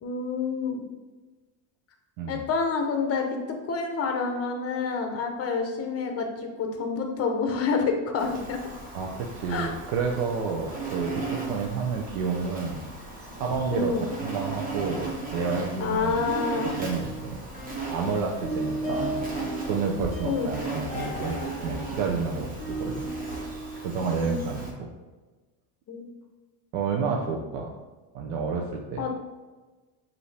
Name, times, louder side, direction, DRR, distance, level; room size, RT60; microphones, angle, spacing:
voice 1, 0.0-0.8 2.3-8.6 9.5-9.7 13.7-14.1 15.8-16.8 20.2-20.5 24.2-24.4 25.9-26.1 29.0-29.1, left 5 dB, 30° left, 4 dB, 0.7 m, -28 dB
Insect, 8.2-24.7, right 3 dB, 20° right, 1.1 m, -36 dB
voice 2, 8.9-12.9 13.4-13.9 14.2-16.3 16.8-17.4 17.9-19.3 19.7-23.1 23.4-24.9 26.7-27.7 28.1-29.1, right 5 dB, 80° right, 0 dB, 0.7 m, -30 dB
sound 1, 16.3-18.1 18.4-23.8, right 1 dB, 15° left, 1.1 m, -36 dB
5.3 x 2.8 x 3.3 m, 1.2 s
cardioid pair, 130°, 45 cm